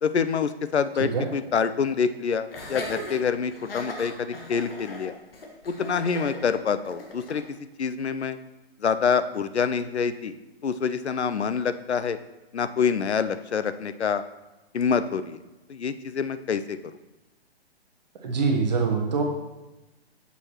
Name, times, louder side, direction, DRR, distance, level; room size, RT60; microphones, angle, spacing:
voice 1, 0.0-5.1 5.7-7.4 7.8-8.4 8.8-10.3 10.6-12.2 12.5-14.2 14.7-15.4 15.7-16.8, left 6 dB, 85° left, 12 dB, 0.5 m, -26 dB
Laughter, 2.5-7.5, left 2 dB, 60° left, 1.3 m, -38 dB
voice 2, 18.2-19.2, right 4 dB, 40° right, 1 dB, 0.9 m, -24 dB
6.9 x 6.2 x 2.9 m, 1.1 s
figure-of-eight pair, 125°, 32 cm